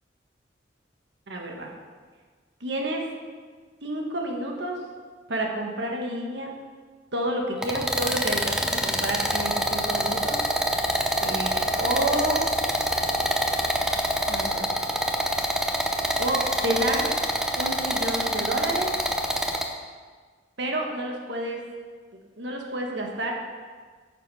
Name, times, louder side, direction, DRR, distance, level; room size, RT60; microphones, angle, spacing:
voice 1, 1.3-1.7 2.6-3.1 3.8-4.8 5.3-6.5 7.1-10.4 11.2-12.5 14.3-15.0 16.2-17.1 17.5-18.9 20.6-21.6 22.4-23.3, right 1 dB, 70° right, 1 dB, 1.5 m, -29 dB
sound 1, 7.6-19.6, equal, 5° right, 0.7 m, -26 dB
9.7 x 7.0 x 4.8 m, 1.5 s
head